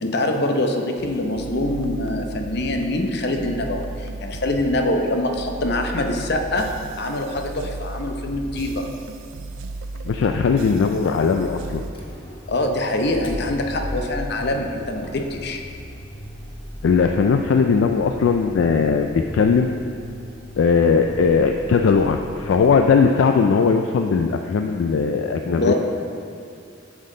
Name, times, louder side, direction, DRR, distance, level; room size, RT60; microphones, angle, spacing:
voice 1, 0.0-6.7 7.0-8.9 12.5-15.6 25.6-25.7, left 1 dB, 60° left, 4 dB, 0.7 m, -24 dB
sound 1, 1.0-11.9, right 2 dB, 85° right, 0.4 m, -35 dB
voice 2, 10.0-11.8 16.8-19.7 20.6-25.7, left 5 dB, 75° left, 5 dB, 0.3 m, -19 dB
Motor vehicle (road), 11.8-23.0, equal, 25° left, 0.9 m, -37 dB
7.7 x 7.3 x 3.8 m, 2.4 s
head